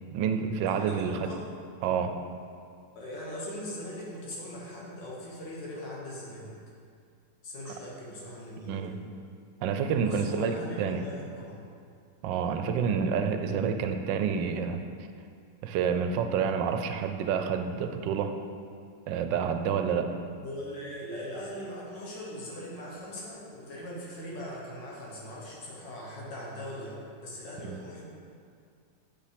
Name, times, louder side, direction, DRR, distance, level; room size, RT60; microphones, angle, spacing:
voice 1, 0.1-1.3 1.8-2.3 8.7-8.9 9.6-11.1 12.2-14.8 15.6-18.4 19.1-20.2 27.6-27.8, right 6 dB, 85° right, 7 dB, 1.3 m, -28 dB
voice 2, 0.7-1.5 3.0-6.5 7.4-9.0 10.0-11.6 20.1-28.0, left 1 dB, 75° left, -5 dB, 2.2 m, -40 dB
6.9 x 5.5 x 5.0 m, 2.3 s
omnidirectional pair, 1.9 m